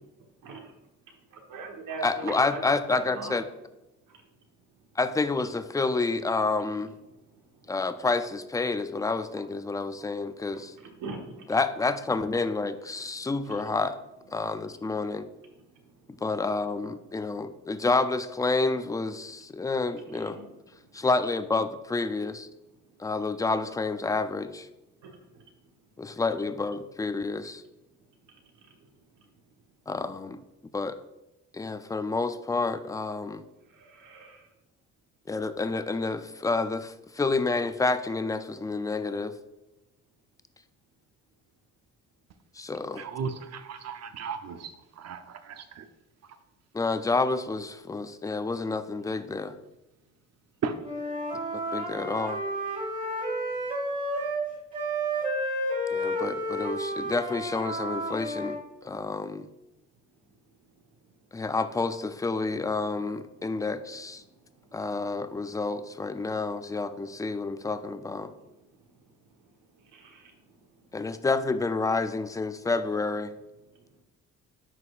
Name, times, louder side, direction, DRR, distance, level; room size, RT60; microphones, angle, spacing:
voice 1, 1.5-2.6 2.9-3.4 4.1-4.2 7.3-7.7 10.0-10.1 10.5-11.5 13.2-13.5 14.6-14.7 15.5-16.1 19.9-20.4 25.0-25.4 29.2-29.3 33.7-34.5 64.3-64.4 68.7-68.8 69.8-70.5, right 4 dB, 80° right, 2 dB, 1.3 m, -42 dB
voice 2, 2.0-3.4 5.0-6.9 7.7-10.7 11.5-14.0 14.3-15.3 16.2-20.4 20.9-22.5 23.0-24.7 26.0-27.6 29.9-30.4 30.7-31.0 31.5-33.4 35.3-39.3 42.6-43.1 46.7-49.5 51.5-52.4 55.9-59.5 61.3-64.2 64.7-68.3 70.9-73.3, left 3 dB, 10° left, 11 dB, 0.4 m, -29 dB
voice 3, 43.0-44.7 45.0-45.8 50.6-50.7, right 6 dB, 60° right, 9 dB, 0.7 m, -35 dB
Wind instrument woodwind instrument, 50.8-54.4 54.7-58.6, right 1 dB, 25° right, 2.3 m, -31 dB
10.5 x 4.1 x 2.5 m, 0.98 s
cardioid pair, 90°, 30 cm